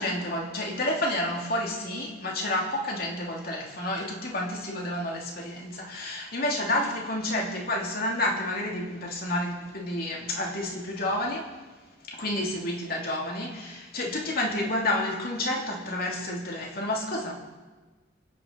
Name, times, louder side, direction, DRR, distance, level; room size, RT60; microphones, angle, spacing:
voice 1, 0.0-11.5 12.1-17.3, left 1 dB, 50° left, -1 dB, 2.9 m, -30 dB
24.0 x 9.7 x 4.1 m, 1.3 s
head